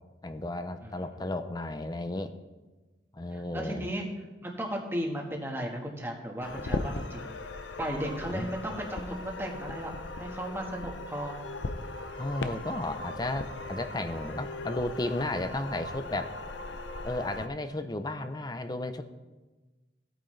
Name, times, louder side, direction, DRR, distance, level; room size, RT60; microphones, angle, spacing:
voice 1, 0.2-2.3 3.1-3.9 8.3-8.8 12.2-16.3 17.0-19.0, left 2 dB, 20° left, 10 dB, 0.6 m, -34 dB
voice 2, 3.3-4.1 4.4-7.3 7.8-11.4, right 1 dB, 10° right, 0 dB, 1.5 m, -35 dB
sound 1, 6.4-17.5, left 2 dB, 80° left, 0.7 m, -38 dB
16.0 x 9.0 x 3.3 m, 1.2 s
head